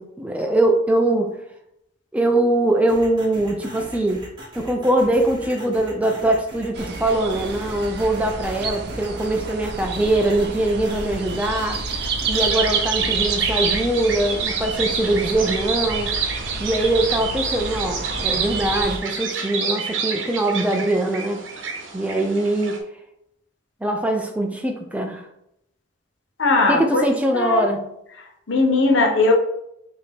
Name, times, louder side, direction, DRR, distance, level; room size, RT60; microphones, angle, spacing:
voice 1, 0.0-1.4 2.1-4.3 4.5-11.8 12.3-16.2 16.6-21.5 21.9-22.8 23.8-25.3 26.7-27.9, right 1 dB, 5° right, 3 dB, 0.4 m, -22 dB
sound 1, 2.9-12.5, right 1 dB, 25° right, 1.3 m, -39 dB
sound 2, 6.7-19.0, right 4 dB, 55° right, 0.6 m, -29 dB
sound 3, 12.3-22.8, right 5 dB, 85° right, 0.8 m, -28 dB
voice 2, 26.4-27.7 28.5-29.3, left 3 dB, 70° left, 2 dB, 0.8 m, -19 dB
5.2 x 2.8 x 3.4 m, 0.79 s
head